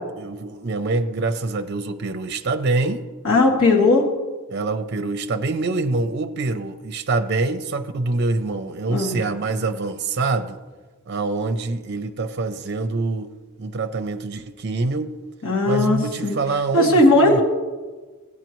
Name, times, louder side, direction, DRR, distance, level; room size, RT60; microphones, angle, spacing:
voice 1, 0.2-3.0 4.5-10.6 11.1-13.3 13.6-15.2 15.7-17.4, right 3 dB, 50° right, 8 dB, 0.5 m, -25 dB
voice 2, 3.2-4.1 8.9-9.2 15.4-16.4 16.7-17.4, left 2 dB, 65° left, -2 dB, 2.1 m, -17 dB
15.5 x 9.6 x 3.0 m, 1.3 s
head